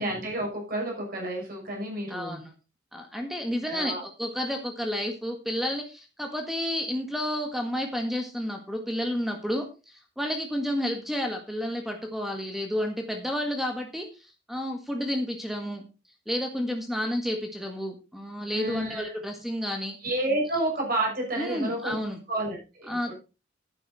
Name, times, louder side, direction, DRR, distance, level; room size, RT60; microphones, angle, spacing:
voice 1, 0.0-2.4 3.7-4.0 18.5-19.1 20.0-22.0 22.3-23.1, right 1 dB, 50° right, -1 dB, 6.4 m, -30 dB
voice 2, 2.1-2.5 2.9-15.8 16.3-20.0 21.4-22.2 22.9-23.1, equal, ahead, 3 dB, 1.7 m, -31 dB
11.0 x 10.5 x 4.2 m, 0.31 s
head